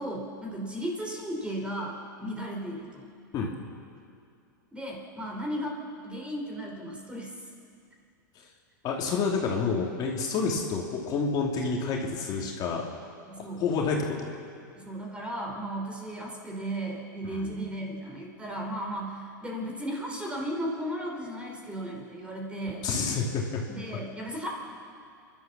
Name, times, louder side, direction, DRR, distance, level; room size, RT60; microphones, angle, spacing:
voice 1, 0.0-3.0 4.7-5.8 6.0-7.4 13.2-13.6 14.7-22.8 23.7-24.5, right 1 dB, 10° right, 0 dB, 4.6 m, -35 dB
voice 2, 8.8-12.8 13.4-14.4 17.2-17.5 22.8-23.6, left 4 dB, 40° left, -1 dB, 3.1 m, -29 dB
29.5 x 12.5 x 7.2 m, 2.4 s
hypercardioid pair, 110°, 11 cm